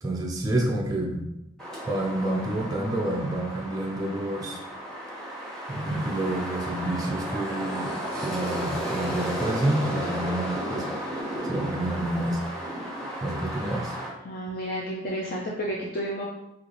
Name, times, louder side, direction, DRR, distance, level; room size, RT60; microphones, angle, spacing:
voice 1, 0.0-1.3 1.8-4.6 5.7-7.9 8.2-10.9 11.4-12.4 13.2-14.0, right 1 dB, 20° right, -2 dB, 0.4 m, -28 dB
sound 1, 1.6-14.1, equal, 5° left, 1.1 m, -33 dB
voice 2, 14.2-16.2, equal, 50° left, -4 dB, 0.5 m, -31 dB
3.2 x 2.5 x 3.8 m, 0.88 s
head